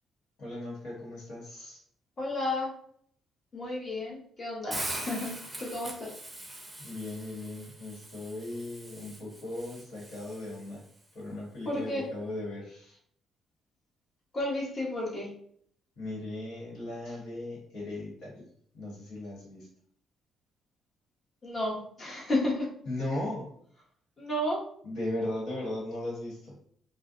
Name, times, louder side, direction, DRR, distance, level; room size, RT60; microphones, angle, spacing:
voice 1, 0.4-1.8 6.8-10.8 11.1-13.0 16.0-18.3 18.7-19.7 22.8-23.5 24.8-26.5, left 1 dB, 80° left, -5 dB, 1.3 m, -37 dB
voice 2, 2.2-2.7 3.5-5.3 5.6-6.1 11.6-12.1 14.3-15.3 21.4-22.7 24.2-24.6, left 1 dB, 35° left, -4 dB, 1.0 m, -32 dB
Hiss, 4.7-10.8, right 1 dB, 5° right, 0.6 m, -42 dB
2.4 x 2.1 x 2.5 m, 0.63 s
cardioid pair, 90°, 0 cm